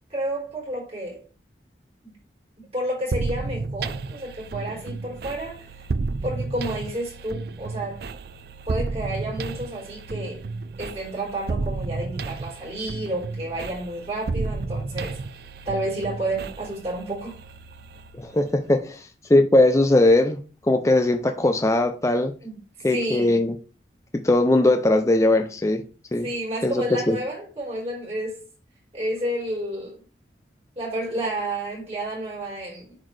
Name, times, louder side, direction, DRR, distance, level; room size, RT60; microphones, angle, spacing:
voice 1, 0.1-1.2 2.0-2.2 2.6-5.6 6.2-8.0 8.7-10.4 10.8-15.2 15.6-17.4 22.4-22.6 22.9-23.4 26.2-28.4 28.9-30.0 30.7-33.0, right 1 dB, 35° right, 4.2 m, -30 dB
sound 1, 3.1-18.7, right 3 dB, 55° right, 0.4 m, -32 dB
voice 2, 18.1-20.4 20.7-22.3 22.8-23.5 24.1-25.8 26.1-26.3 26.6-27.2, left 2 dB, 15° left, 0.4 m, -20 dB
10.0 x 4.1 x 3.2 m
head